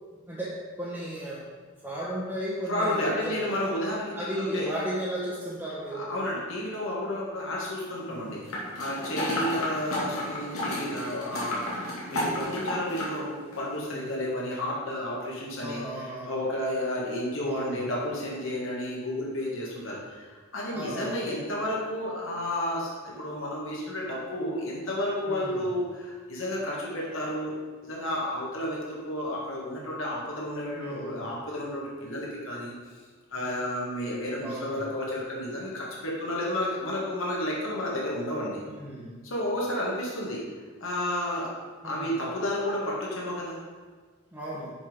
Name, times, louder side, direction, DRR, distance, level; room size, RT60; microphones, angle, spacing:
voice 1, 0.8-1.4 1.8-3.5 4.1-6.0 8.1-8.4 9.2-9.5 13.8-14.1 15.6-16.3 17.4-17.8 20.7-21.2 25.3-25.6 30.7-31.2 34.4-34.8 38.7-39.1 41.8-42.2 44.3-44.7, equal, 10° right, -8 dB, 1.1 m, -35 dB
voice 2, 2.7-4.7 5.9-27.5 27.8-32.7 33.3-38.6 39.2-40.4 40.8-41.5 41.8-43.6, left 1 dB, 65° left, -4 dB, 1.7 m, -31 dB
sound 1, 8.5-13.2 13.5-13.6, left 1 dB, 90° left, 2.2 m, -32 dB
7.1 x 5.4 x 5.2 m, 1.4 s
head